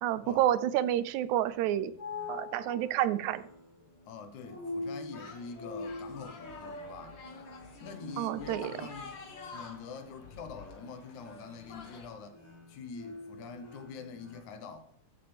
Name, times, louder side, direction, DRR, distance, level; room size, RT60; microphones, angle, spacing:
voice 1, 0.0-1.9 2.3-3.4 8.2-8.7, right 12 dB, 85° right, 1.9 m, -29 dB
sound 1, 1.6-14.4, left 2 dB, 15° left, 2.8 m, -45 dB
voice 2, 4.1-7.2 7.8-12.4 12.7-14.9, left 5 dB, 80° left, 2.5 m, -45 dB
sound 2, 5.1-12.1, left 4 dB, 50° left, 1.7 m, -49 dB
14.5 x 7.5 x 3.4 m
omnidirectional pair, 3.4 m